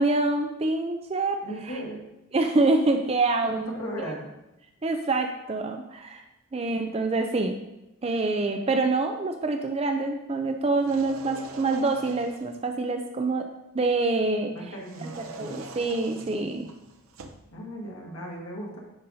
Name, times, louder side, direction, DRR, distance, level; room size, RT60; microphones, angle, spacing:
voice 1, 0.0-1.4 1.7-1.8 2.3-3.8 4.8-6.2 6.5-7.6 8.0-13.4 13.7-14.5 15.0-15.1 15.4-16.7, right 3 dB, 30° right, 5 dB, 0.3 m, -26 dB
voice 2, 1.4-2.0 3.8-4.3 14.5-15.7 17.5-18.8, equal, 90° left, -2 dB, 1.6 m, -37 dB
sound 1, 10.7-12.6 14.8-17.5, right 3 dB, 80° right, 0.6 m, -43 dB
9.5 x 5.2 x 2.7 m, 0.95 s
head